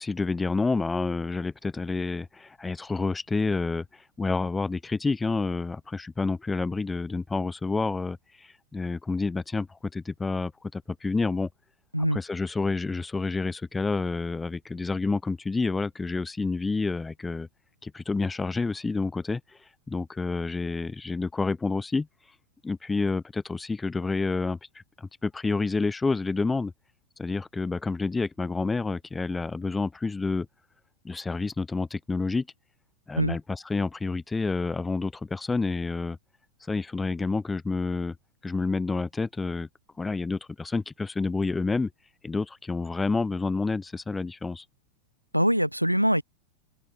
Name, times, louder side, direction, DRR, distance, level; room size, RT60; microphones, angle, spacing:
voice 1, 0.0-11.5 12.1-17.5 17.8-19.4 19.9-22.1 22.6-24.6 25.0-26.7 27.2-30.5 31.0-32.5 33.1-36.2 36.7-38.2 38.4-39.7 40.0-41.9 42.2-44.6, left 3 dB, 10° left, 1.1 m, -29 dB
voice 2, 45.3-46.2, equal, 90° right, 0.9 m, -23 dB
open air
figure-of-eight pair, 90°, 0 cm